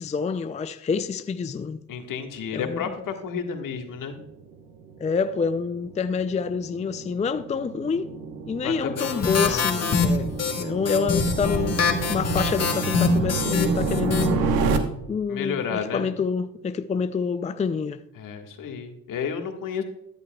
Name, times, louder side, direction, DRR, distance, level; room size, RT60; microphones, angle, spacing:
voice 1, 0.0-1.8 2.5-2.9 5.0-8.1 8.5-14.7 15.1-18.0, left 5 dB, 20° left, 0.4 m, -27 dB
voice 2, 1.9-4.2 8.6-10.1 15.3-16.1 18.2-19.8, left 6 dB, 60° left, 1.7 m, -32 dB
sound 1, 3.6-14.8, right 4 dB, 75° right, 1.2 m, -30 dB
sound 2, 9.0-14.3, left 4 dB, 45° left, 1.6 m, -24 dB
13.5 x 10.5 x 2.3 m
hypercardioid pair, 60°, 36 cm